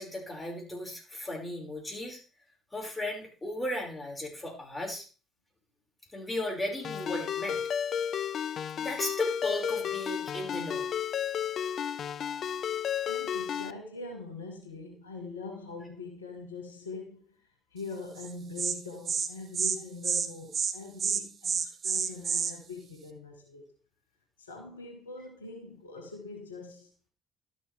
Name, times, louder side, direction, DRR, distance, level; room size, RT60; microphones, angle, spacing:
voice 1, 0.0-2.2 2.7-5.0 6.1-7.6 8.8-10.9, left 1 dB, 20° left, 5.5 m, -36 dB
Ringtone, 6.8-13.7, left 8 dB, 55° left, 0.4 m, -32 dB
voice 2, 13.1-17.4 17.7-23.7 24.4-27.1, left 3 dB, 90° left, 1.4 m, -43 dB
Insect, 18.2-18.3 18.6-18.7 19.1-19.3 19.5-19.8 20.0-20.3 20.5-20.7 21.0-22.5, right 7 dB, 50° right, 1.0 m, -29 dB
12.5 x 7.2 x 3.4 m
hypercardioid pair, 50°, 0 cm